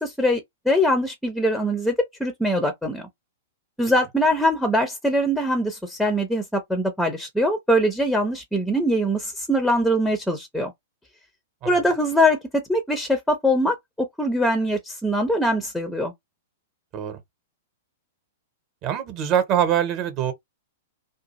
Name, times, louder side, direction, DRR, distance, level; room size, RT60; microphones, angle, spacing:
voice 1, 0.0-1.9 2.2-3.1 3.8-10.7 11.6-16.1, equal, ahead, 0.5 m, -22 dB
voice 2, 18.8-20.3, right 9 dB, 35° right, 0.9 m, -23 dB
2.6 x 2.3 x 2.9 m
figure-of-eight pair, 105°, 0 cm